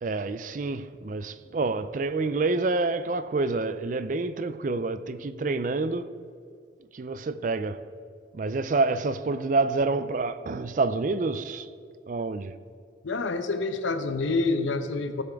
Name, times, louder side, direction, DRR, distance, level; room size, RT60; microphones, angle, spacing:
voice 1, 0.0-6.1 6.9-7.8 8.3-11.7 12.1-12.5, right 3 dB, 45° right, 0.4 m, -28 dB
voice 2, 13.0-15.2, left 3 dB, 85° left, 0.8 m, -27 dB
16.0 x 7.6 x 3.5 m
head